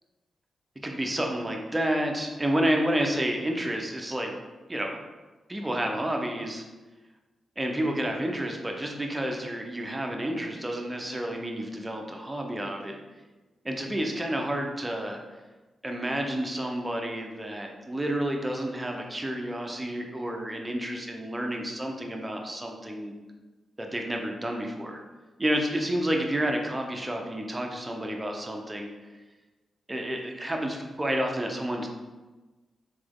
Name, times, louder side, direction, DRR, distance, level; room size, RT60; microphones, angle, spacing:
voice 1, 0.8-4.4 4.7-5.0 5.5-6.6 7.6-13.0 13.6-15.2 15.8-23.1 23.8-25.0 25.4-28.9 29.9-31.9, right 1 dB, 20° right, 2 dB, 0.7 m, -30 dB
3.9 x 3.3 x 3.7 m, 1.2 s
cardioid pair, 65°, 0 cm